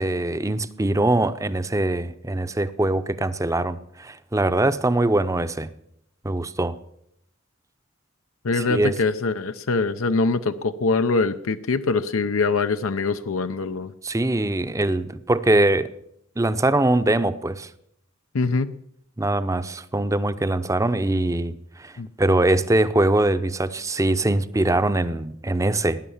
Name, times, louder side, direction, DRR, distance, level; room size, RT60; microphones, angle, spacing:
voice 1, 0.0-5.7 6.2-6.8 8.7-8.9 14.0-15.9 16.4-17.7 19.2-21.9 22.2-26.0, right 2 dB, 15° right, 0.6 m, -22 dB
voice 2, 8.4-13.9 18.3-18.7 22.0-22.1, left 3 dB, 85° left, 0.6 m, -23 dB
19.0 x 10.0 x 7.2 m
head